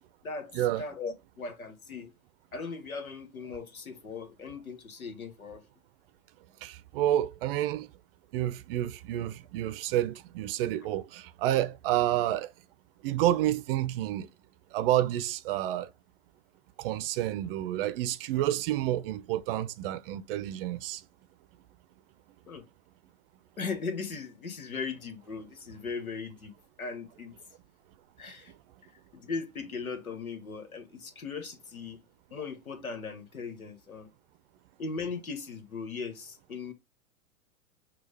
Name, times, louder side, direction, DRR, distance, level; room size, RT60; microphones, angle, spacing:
voice 1, 0.8-2.1 2.5-5.6 22.5-22.6 23.6-27.4 28.2-28.5 29.1-32.0 32.3-34.1 34.8-36.7, left 4 dB, 90° left, 1.3 m, -38 dB
voice 2, 6.6-7.9 8.3-12.5 13.0-14.3 14.7-15.9 16.8-21.0, right 13 dB, 45° right, 0.6 m, -29 dB
6.3 x 2.4 x 3.3 m
hypercardioid pair, 105°, 42 cm